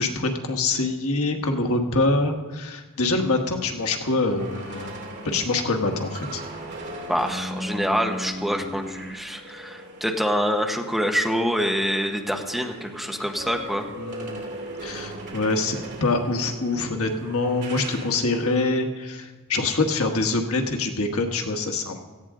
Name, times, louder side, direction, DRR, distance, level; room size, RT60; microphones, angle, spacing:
voice 1, 0.0-5.0 5.2-6.4 14.0-14.5 14.8-22.0, left 3 dB, 85° left, 3 dB, 1.5 m, -25 dB
sound 1, 3.0-11.4 11.8-18.6, equal, 55° right, 3.0 m, -38 dB
voice 2, 7.1-13.9, equal, ahead, 3 dB, 0.9 m, -26 dB
17.0 x 14.5 x 3.8 m, 1.3 s
head